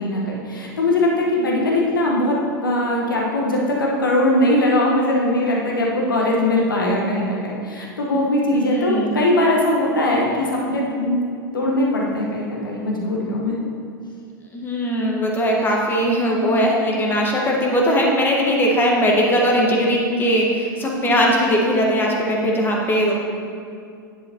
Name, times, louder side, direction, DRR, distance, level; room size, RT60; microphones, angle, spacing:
voice 1, 0.0-2.4 2.6-11.2 11.5-13.6, left 1 dB, 75° left, -2 dB, 1.3 m, -20 dB
voice 2, 8.5-9.1 14.5-23.2, equal, 20° left, -1 dB, 1.5 m, -19 dB
10.5 x 7.9 x 2.9 m, 2.3 s
figure-of-eight pair, 90°, 11 cm